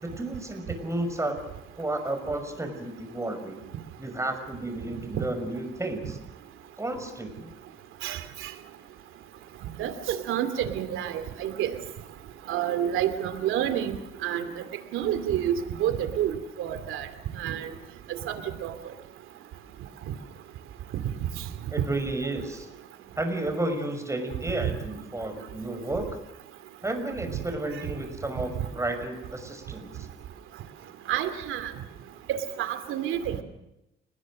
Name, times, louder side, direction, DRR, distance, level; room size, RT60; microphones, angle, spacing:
voice 1, 0.0-1.4 1.8-3.6 4.0-6.2 6.8-7.5 21.7-22.7 23.2-26.2 26.8-29.9, right 2 dB, 15° right, 7 dB, 6.0 m, -32 dB
voice 2, 8.0-8.5 9.8-11.7 12.5-14.5 14.9-17.1 17.4-17.7 18.3-18.4 18.6-18.7 31.1-31.7 32.3-33.4, right 10 dB, 90° right, 10 dB, 2.6 m, -29 dB
29.5 x 20.5 x 6.5 m, 0.88 s
cardioid pair, 90°, 20 cm